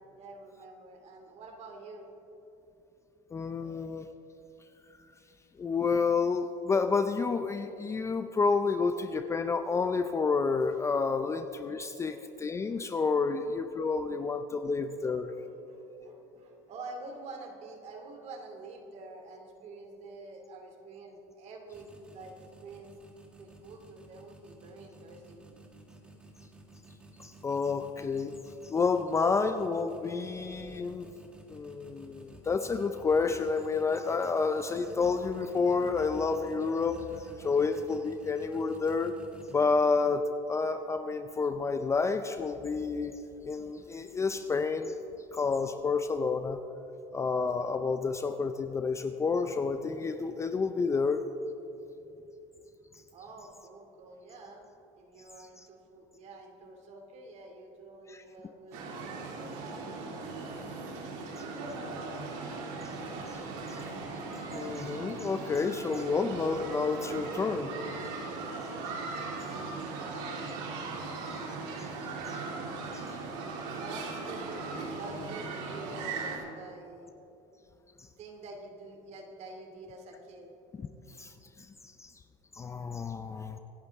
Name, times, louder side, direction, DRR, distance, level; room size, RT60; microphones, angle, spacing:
voice 1, 0.0-2.1 3.6-3.9 11.0-11.3 12.0-12.2 12.7-12.9 13.3-13.4 13.7-22.9 23.3-25.7 43.8-43.9 53.1-54.6 54.9-62.2 69.3-71.2 73.7-77.1 78.2-80.5, right 2 dB, 45° right, 3 dB, 2.5 m, -48 dB
voice 2, 3.3-4.1 5.6-15.3 27.2-28.4 28.6-31.1 31.5-39.1 39.5-43.2 43.4-45.0 45.3-46.6 47.1-51.2 58.1-58.2 63.3-63.4 63.7-63.8 64.5-67.7 71.8-71.9 72.3-72.4 72.9-73.0 80.8-81.3 81.8-82.1 82.5-83.6, left 4 dB, 20° left, 8 dB, 0.5 m, -30 dB
sound 1, 21.7-40.0, right 2 dB, 5° right, 1.7 m, -54 dB
Tai Ping Shan Ambient, 58.7-76.4, right 3 dB, 75° right, 3.1 m, -38 dB
25.0 x 11.5 x 3.6 m, 3.0 s
cardioid pair, 135°, 16 cm